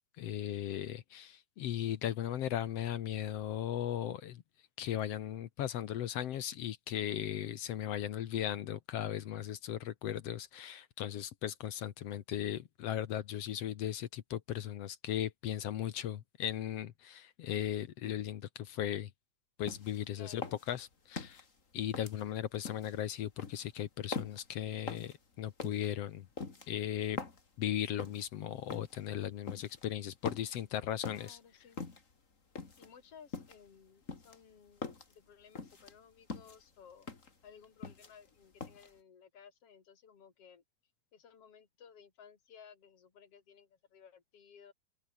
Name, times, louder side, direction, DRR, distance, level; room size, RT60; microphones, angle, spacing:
voice 1, 0.2-4.4 4.8-19.1 19.6-20.4 20.7-21.4 21.7-26.3 26.7-27.2 27.6-31.4, left 11 dB, 65° left, 1.6 m, -37 dB
sound 1, 19.7-20.0 20.4-21.5 21.9-22.9 23.4-23.6 24.1-24.5 24.9-25.2 25.6-25.9 26.4-27.5 28.0-28.3 28.7-29.0 29.5-29.8 30.2-30.6 31.0-31.3 31.8-32.1 32.5-32.9 33.3-33.7 34.1-35.1 35.5-35.9 36.3-36.6 37.0-37.3 37.6-38.3 38.6-38.9, left 4 dB, 25° left, 2.4 m, -43 dB
voice 2, 20.1-20.6 31.1-31.8 32.8-37.1 37.4-40.6 41.1-44.7, left 7 dB, 45° left, 4.1 m, -58 dB
open air
omnidirectional pair, 4.0 m